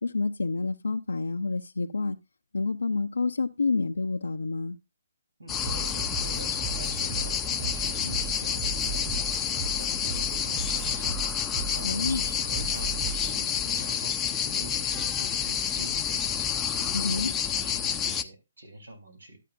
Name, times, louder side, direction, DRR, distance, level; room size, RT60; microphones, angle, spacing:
voice 1, 0.0-2.2 2.5-4.8 11.8-12.2 16.9-17.3, left 3 dB, 85° left, 0.5 m, -28 dB
voice 2, 5.4-19.4, right 1 dB, 85° right, 3.5 m, -44 dB
sound 1, 5.5-18.2, left 8 dB, 15° left, 0.6 m, -29 dB
sound 2, 5.6-13.4, right 6 dB, 35° right, 2.9 m, -37 dB
12.5 x 8.3 x 2.5 m
hypercardioid pair, 145°, 0 cm